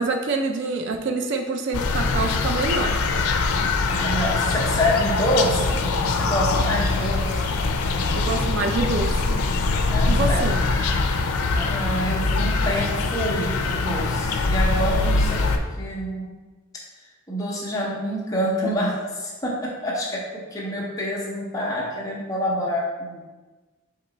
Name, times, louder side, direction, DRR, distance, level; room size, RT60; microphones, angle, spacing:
voice 1, 0.0-3.0 8.1-9.5 10.1-10.6, right 3 dB, 55° right, 5 dB, 0.3 m, -26 dB
sound 1, 1.7-15.6, left 3 dB, 85° left, 0.4 m, -23 dB
voice 2, 3.8-7.4 9.9-10.4 11.6-15.4 15.8-16.3 17.3-20.2 20.5-23.2, equal, 15° left, -4 dB, 0.8 m, -27 dB
4.5 x 3.0 x 3.9 m, 1.3 s
head